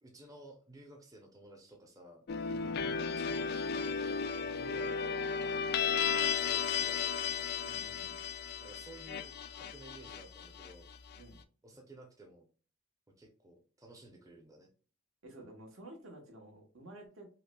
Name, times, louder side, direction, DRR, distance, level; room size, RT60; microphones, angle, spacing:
voice 1, 0.0-2.6 2.8-7.6 8.6-10.9 11.6-12.5 13.2-14.7, right 1 dB, 15° right, 1 dB, 0.6 m, -54 dB
sound 1, 2.3-11.2, left 6 dB, 50° left, 0.3 m, -34 dB
voice 2, 2.4-2.7 7.6-8.2 11.2-11.4 15.2-17.3, right 1 dB, 70° right, 2 dB, 1.0 m, -52 dB
5.5 x 2.1 x 2.2 m, 0.39 s
head